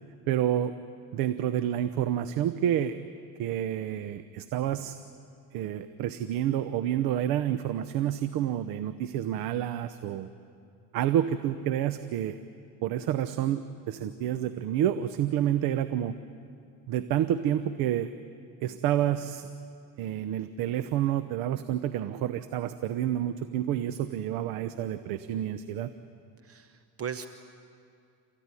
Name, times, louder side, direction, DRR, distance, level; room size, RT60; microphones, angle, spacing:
voice 1, 0.3-0.7 1.1-3.0 3.4-4.9 5.5-10.3 10.9-12.4 12.8-16.2 16.9-18.1 18.6-19.5 20.0-25.9, right 11 dB, 70° right, 11 dB, 0.9 m, -29 dB
voice 2, 26.4-27.3, right 8 dB, 40° right, 9 dB, 0.9 m, -37 dB
28.0 x 15.0 x 9.8 m, 2.4 s
cardioid pair, 115°, 37 cm